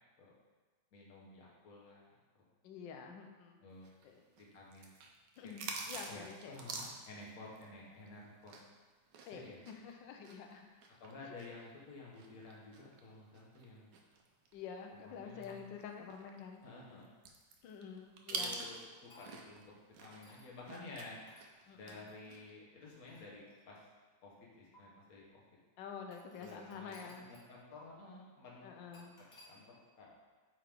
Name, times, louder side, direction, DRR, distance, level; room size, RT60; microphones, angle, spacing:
voice 1, 0.9-2.1 2.3-2.5 3.6-3.9 4.4-4.9 5.4-5.5 6.1-8.6 9.2-9.6 11.0-13.9 15.0-15.7 16.6-17.1 18.3-19.7 20.0-21.2 21.7-23.8 24.2-25.4 26.4-28.7 29.5-29.6 30.0-30.1, left 3 dB, 50° left, -4 dB, 1.6 m, -52 dB
voice 2, 2.6-3.6 4.0-4.2 5.4-6.6 9.3-10.7 14.5-16.6 17.6-18.6 21.7-22.1 25.8-27.3 28.6-29.2, left 6 dB, 75° left, 3 dB, 1.4 m, -48 dB
sound 1, 3.8-8.8 9.1-14.6 15.0-15.1 15.4-19.6 19.9-22.0 22.3-22.5, right 4 dB, 70° right, 1.3 m, -46 dB
sound 2, 18.4-19.6 20.2-20.5 21.3-21.5 21.9-22.1 22.8-24.0 24.7-24.8 26.1-27.5 27.8-27.9 28.9-29.5, left 1 dB, 25° left, 1.2 m, -62 dB
8.6 x 3.7 x 3.5 m, 1.3 s
omnidirectional pair, 2.1 m